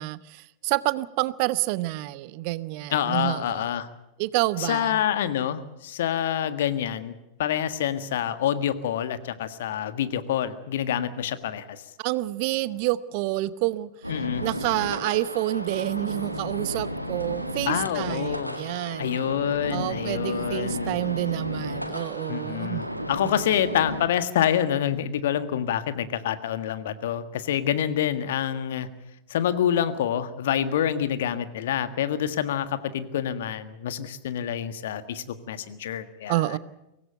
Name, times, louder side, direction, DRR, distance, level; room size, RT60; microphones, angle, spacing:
voice 1, 0.0-3.6 4.2-5.0 12.0-13.9 14.4-19.2 19.7-22.8 23.2-23.4 36.3-36.6, right 18 dB, 45° right, 18 dB, 0.8 m, -28 dB
voice 2, 2.9-3.9 4.6-7.1 7.4-11.8 14.1-14.4 17.7-18.6 19.0-20.9 22.3-28.9 29.3-36.6, left 10 dB, 55° left, 12 dB, 1.6 m, -27 dB
sound 1, 14.0-24.1, equal, 90° right, 1.9 m, -33 dB
24.0 x 18.0 x 7.9 m, 0.92 s
figure-of-eight pair, 90°, 0 cm